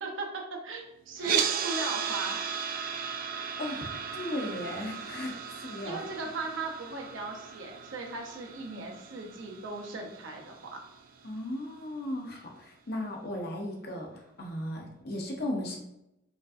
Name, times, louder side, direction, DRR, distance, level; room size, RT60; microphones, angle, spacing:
voice 1, 0.0-2.4 5.8-10.8, right 3 dB, 80° right, 1 dB, 0.7 m, -38 dB
sound 1, 1.2-11.3, right 7 dB, 45° right, 0.3 m, -36 dB
voice 2, 3.6-5.3 5.6-6.0 11.2-14.1 14.4-15.8, left 1 dB, 55° left, 1 dB, 0.7 m, -36 dB
5.0 x 2.6 x 2.5 m, 0.86 s
head